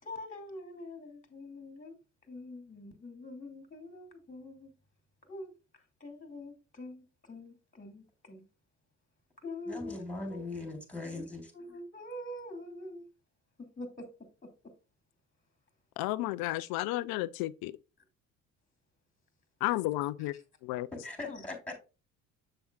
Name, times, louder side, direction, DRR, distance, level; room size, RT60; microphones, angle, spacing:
voice 1, 0.0-2.0 2.3-4.7 5.2-8.4 9.4-10.0 10.3-10.4 11.0-11.3 11.5-13.1 13.8-14.1 20.2-20.4 21.3-21.4, left 2 dB, 20° left, 2.5 m, -45 dB
voice 2, 9.7-11.5 20.9-21.7, left 2 dB, 5° left, 4.0 m, -40 dB
voice 3, 16.0-17.7 19.6-20.3 20.6-20.9, left 17 dB, 65° left, 0.6 m, -32 dB
7.8 x 7.0 x 2.4 m
hypercardioid pair, 70°, 39 cm